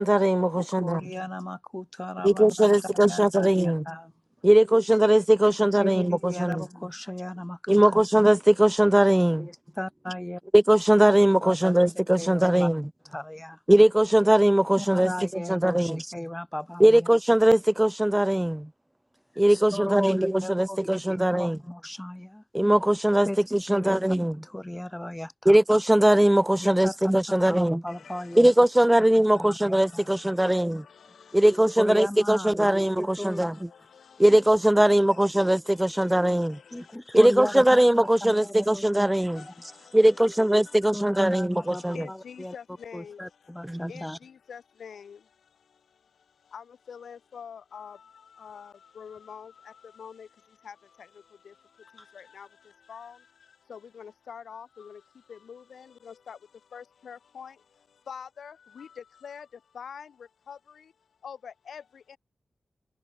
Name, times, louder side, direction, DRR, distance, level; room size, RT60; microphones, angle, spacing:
voice 1, 0.0-1.0 2.2-3.8 4.4-6.6 7.7-9.5 10.7-12.9 13.7-16.1 16.8-18.7 19.4-21.6 22.5-24.3 25.5-27.8 28.4-30.8 31.3-33.5 34.2-36.6 37.1-39.4 39.9-42.1 43.6-43.9, right 1 dB, 5° right, 0.8 m, -20 dB
voice 2, 0.5-2.7 3.1-4.1 5.8-8.0 9.4-10.4 11.4-11.8 12.2-12.7 13.0-13.6 14.8-17.1 19.5-22.4 23.2-23.4 23.7-25.6 26.6-28.5 29.3-30.1 31.8-33.5 36.7-37.8 38.3-38.8 39.5-39.6 40.9-42.5 42.9-44.2 52.0-52.1, left 1 dB, 10° left, 3.1 m, -36 dB
voice 3, 27.9-28.6 29.2-31.8 32.2-32.3 32.6-37.0 38.0-60.9 61.2-62.2, left 7 dB, 85° left, 5.5 m, -47 dB
wide cardioid pair, 130°, 0 cm